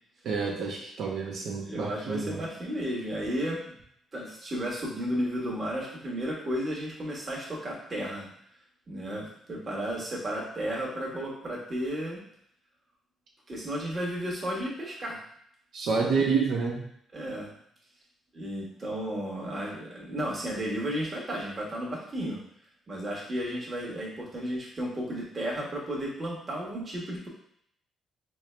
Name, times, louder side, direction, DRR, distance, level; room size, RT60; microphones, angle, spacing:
voice 1, 0.2-2.4 15.7-16.8, right 5 dB, 70° right, -2 dB, 0.9 m, -28 dB
voice 2, 1.7-3.6 4.1-8.3 8.9-12.2 13.5-15.2 15.8-16.4 17.1-17.5 18.3-22.4 22.9-27.3, equal, 30° right, -4 dB, 1.3 m, -33 dB
4.5 x 2.2 x 3.3 m, 0.70 s
cardioid pair, 90°, 0 cm